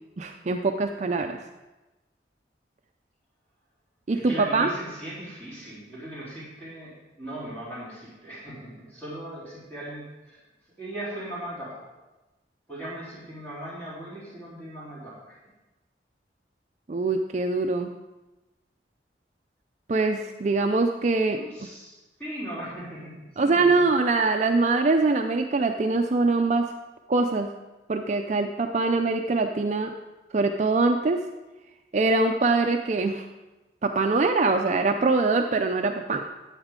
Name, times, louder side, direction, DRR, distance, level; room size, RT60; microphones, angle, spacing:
voice 1, 0.2-1.4 4.1-4.7 16.9-17.9 19.9-21.4 23.4-26.7 27.1-27.5 27.9-29.9 30.3-31.2 31.9-33.3 33.8-36.2, right 3 dB, 40° right, 5 dB, 0.4 m, -23 dB
voice 2, 4.1-10.4 10.8-11.9 12.7-15.4 21.3-23.6, right 1 dB, 10° left, -11 dB, 3.7 m, -38 dB
11.5 x 8.0 x 3.7 m, 1.1 s
head